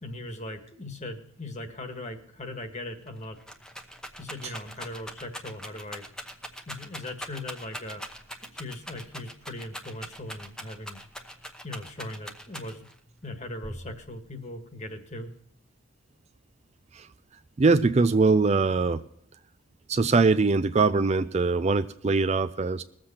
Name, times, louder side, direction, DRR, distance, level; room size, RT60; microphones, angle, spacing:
voice 1, 0.0-3.4 4.2-6.0 6.7-8.0 8.5-11.0 11.6-12.8 13.2-15.3, left 1 dB, 35° left, 1.6 m, -39 dB
Rattle, 2.7-2.8 3.1-13.0 13.6-14.2, equal, 5° left, 0.9 m, -41 dB
voice 2, 17.6-19.0 19.9-22.8, right 4 dB, 30° right, 0.4 m, -22 dB
20.5 x 7.7 x 4.3 m
head